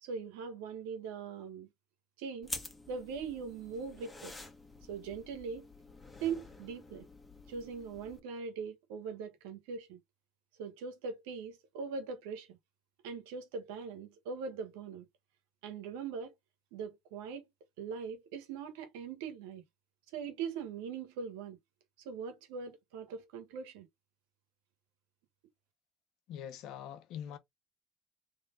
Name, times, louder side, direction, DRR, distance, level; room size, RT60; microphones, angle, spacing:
voice 1, 0.0-1.7 2.2-2.5 2.9-4.3 4.9-5.7 6.2-7.1 7.5-10.0 10.6-12.6 13.0-15.1 15.6-16.3 16.7-17.5 17.8-19.6 20.1-21.6 22.0-23.9, right 6 dB, 85° right, 1.4 m, -41 dB
sound 1, 2.4-8.2, left 2 dB, 15° left, 1.4 m, -48 dB
voice 2, 26.3-27.4, left 9 dB, 70° left, 1.1 m, -43 dB
3.4 x 3.3 x 3.9 m
supercardioid pair, 80°, 0 cm